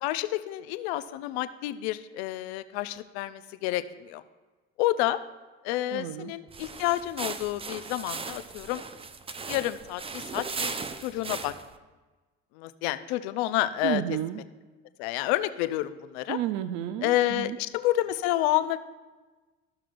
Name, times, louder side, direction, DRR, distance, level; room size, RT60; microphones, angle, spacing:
voice 1, 0.0-4.2 4.8-5.2 5.6-8.8 9.5-10.7 11.0-11.5 12.6-14.0 15.0-16.4 17.0-18.8, left 15 dB, 85° left, 13 dB, 0.5 m, -29 dB
voice 2, 5.9-6.3 13.8-14.4 16.3-17.6, right 12 dB, 70° right, 12 dB, 0.5 m, -31 dB
sound 1, 6.5-11.8, right 4 dB, 20° right, 0.5 m, -37 dB
14.0 x 6.0 x 2.5 m, 1.3 s
supercardioid pair, 85°, 31 cm